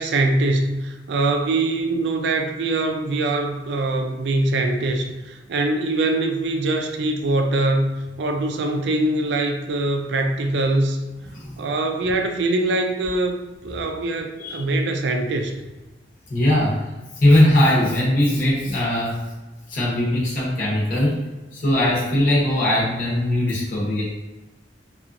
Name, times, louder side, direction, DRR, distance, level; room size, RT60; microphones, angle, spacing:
voice 1, 0.0-11.0 11.6-15.5, right 2 dB, 65° right, 5 dB, 0.4 m, -23 dB
voice 2, 11.3-11.6 14.4-14.6 16.3-19.2 19.7-21.2 21.5-24.0, left 1 dB, 50° left, -7 dB, 0.8 m, -20 dB
2.8 x 2.4 x 2.5 m, 1.1 s
head